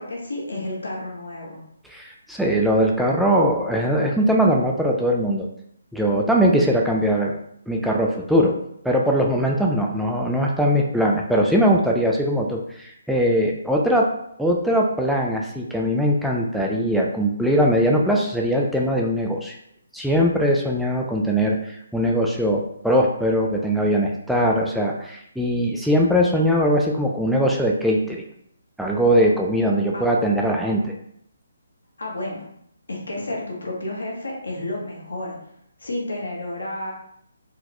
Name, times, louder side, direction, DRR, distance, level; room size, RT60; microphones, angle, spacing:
voice 1, 0.0-1.6 29.9-30.0 32.0-32.5 32.9-35.4 35.8-36.9, left 1 dB, 90° left, -2 dB, 1.3 m, -31 dB
voice 2, 1.9-5.5 5.9-7.3 7.7-8.5 8.8-14.1 14.4-19.6 19.9-28.2 28.8-30.9, equal, ahead, -2 dB, 0.3 m, -21 dB
4.0 x 2.0 x 2.9 m, 0.71 s
hypercardioid pair, 155°, 0 cm